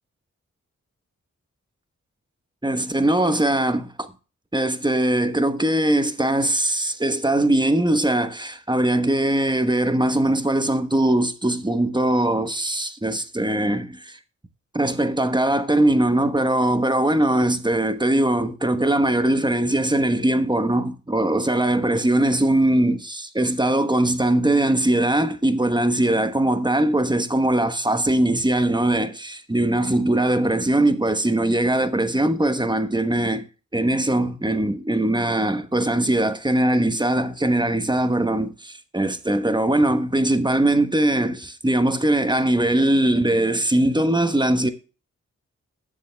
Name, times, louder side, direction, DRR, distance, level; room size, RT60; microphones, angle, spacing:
voice 1, 2.6-4.1 4.5-14.2 14.7-33.4 33.7-44.7, right 1 dB, 15° right, 1.2 m, -21 dB
19.0 x 7.4 x 2.3 m
cardioid pair, 50°, 30 cm